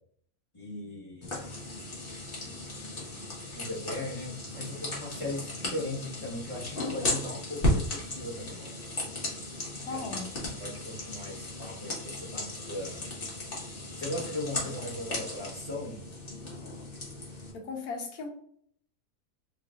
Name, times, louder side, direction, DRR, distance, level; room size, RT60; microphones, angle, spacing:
voice 1, 0.5-1.4 3.5-8.6 9.9-10.1 10.6-13.1 13.9-16.0, left 1 dB, 25° left, -8 dB, 1.0 m, -38 dB
sound 1, 1.2-17.5, left 1 dB, 40° left, 1.3 m, -35 dB
voice 2, 9.8-10.3 17.5-18.3, left 4 dB, 85° left, 2 dB, 1.3 m, -37 dB
3.8 x 3.2 x 2.4 m, 0.62 s
omnidirectional pair, 1.5 m